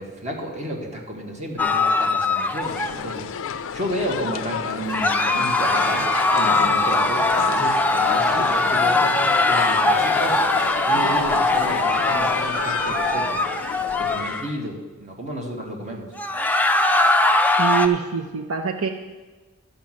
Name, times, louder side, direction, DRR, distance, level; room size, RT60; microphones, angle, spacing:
voice 1, 0.0-3.3 3.7-6.1 6.3-9.2 9.4-10.5 10.9-13.4 14.0-16.1, equal, 30° right, 1 dB, 1.6 m, -32 dB
sound 1, 1.6-3.1 4.9-14.5 16.2-17.9, left 2 dB, 5° left, 0.5 m, -21 dB
sound 2, 2.6-14.4, left 7 dB, 60° left, 0.4 m, -31 dB
voice 2, 17.6-18.9, right 7 dB, 65° right, 6 dB, 0.6 m, -24 dB
11.5 x 5.3 x 7.5 m, 1.3 s
head